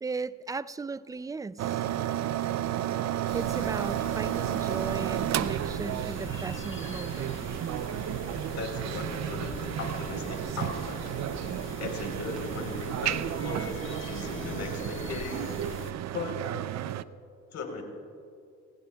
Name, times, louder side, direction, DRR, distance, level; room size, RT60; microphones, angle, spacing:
voice 1, 0.0-1.8 3.3-7.4, right 4 dB, 10° right, 17 dB, 0.3 m, -36 dB
sound 1, 1.6-17.0, right 12 dB, 60° right, 0.5 m, -32 dB
sound 2, 3.3-15.9, left 4 dB, 40° left, 1.5 m, -43 dB
voice 2, 8.5-11.1 11.8-15.5 16.1-16.6 17.5-17.8, left 4 dB, 65° left, 2 dB, 3.9 m, -37 dB
29.0 x 16.0 x 2.3 m, 2.4 s
cardioid pair, 90°, 30 cm